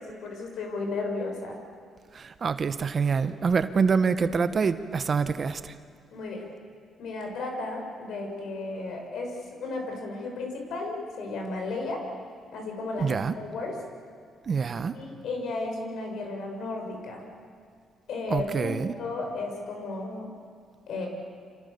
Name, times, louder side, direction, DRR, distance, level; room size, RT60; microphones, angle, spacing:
voice 1, 0.0-1.6 6.1-6.5 7.0-9.4 9.6-12.0 12.5-13.8 14.9-17.2 18.1-20.3 20.9-21.1, left 3 dB, 70° left, 2 dB, 7.0 m, -34 dB
voice 2, 2.1-5.7 13.0-13.3 14.5-15.0 18.3-18.9, right 5 dB, 45° right, 11 dB, 1.2 m, -26 dB
27.5 x 26.5 x 7.1 m, 2.2 s
cardioid pair, 90°, 0 cm